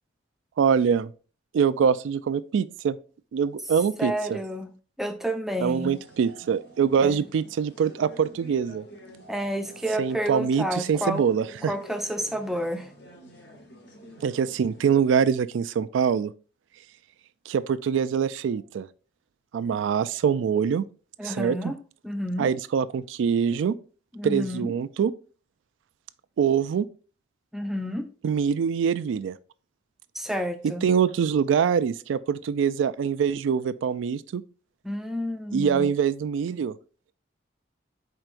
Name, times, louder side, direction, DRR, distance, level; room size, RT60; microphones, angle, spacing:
voice 1, 0.6-1.1 1.5-3.0 3.3-4.4 5.6-8.8 10.0-11.7 14.2-16.3 17.5-18.9 19.5-20.8 21.2-21.6 22.4-23.7 24.2-25.1 26.4-26.9 28.2-29.3 30.8-34.4 35.5-36.7, right 7 dB, 80° right, 0.3 m, -24 dB
voice 2, 4.0-4.7 5.0-5.9 7.0-7.2 9.3-11.2 11.7-12.9 21.2-21.8 22.0-22.5 24.1-24.7 27.5-28.1 30.1-30.9 34.8-35.9, equal, ahead, 0.4 m, -30 dB
sound 1, 5.7-15.3, right 1 dB, 65° left, 1.1 m, -49 dB
4.5 x 4.5 x 2.5 m
head